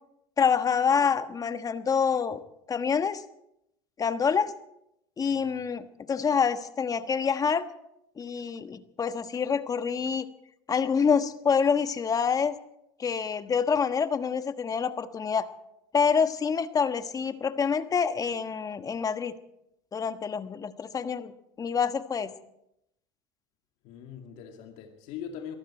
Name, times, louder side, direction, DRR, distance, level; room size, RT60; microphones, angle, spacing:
voice 1, 0.4-2.4 2.7-3.2 4.0-4.5 5.2-7.7 8.2-10.3 10.7-12.6 13.0-15.5 15.9-19.3 19.9-21.3 21.6-22.3, left 6 dB, 30° left, 10 dB, 1.3 m, -26 dB
voice 2, 5.3-5.6 23.8-25.5, left 8 dB, 65° left, 3 dB, 2.3 m, -41 dB
22.5 x 14.5 x 4.4 m, 0.80 s
hypercardioid pair, 85°, 13 cm